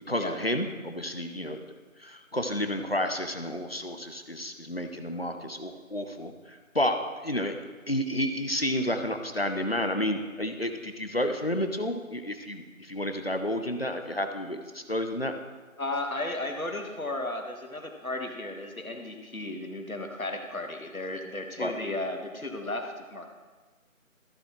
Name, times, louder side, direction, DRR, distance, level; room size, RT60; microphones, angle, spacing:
voice 1, 0.1-1.6 2.0-7.0 7.2-7.5 7.9-15.3 21.6-21.7, left 1 dB, 45° left, 6 dB, 0.8 m, -30 dB
voice 2, 15.8-23.3, left 2 dB, 80° left, 4 dB, 1.6 m, -34 dB
14.5 x 7.0 x 3.1 m, 1.3 s
figure-of-eight pair, 175°, 41 cm